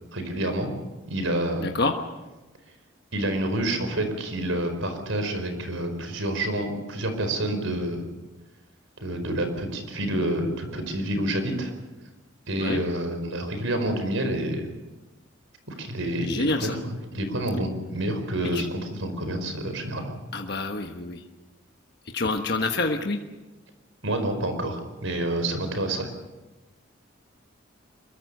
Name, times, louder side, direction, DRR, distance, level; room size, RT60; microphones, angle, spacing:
voice 1, 0.1-0.7 1.1-1.7 3.1-8.1 9.0-11.7 12.5-14.7 15.7-20.1 24.0-26.1, right 1 dB, 80° right, 7 dB, 4.8 m, -28 dB
voice 2, 1.6-1.9 12.6-12.8 16.2-16.8 18.5-18.6 20.3-21.2 22.1-23.2, left 3 dB, 55° left, 3 dB, 1.4 m, -27 dB
24.0 x 22.0 x 6.8 m, 1.1 s
head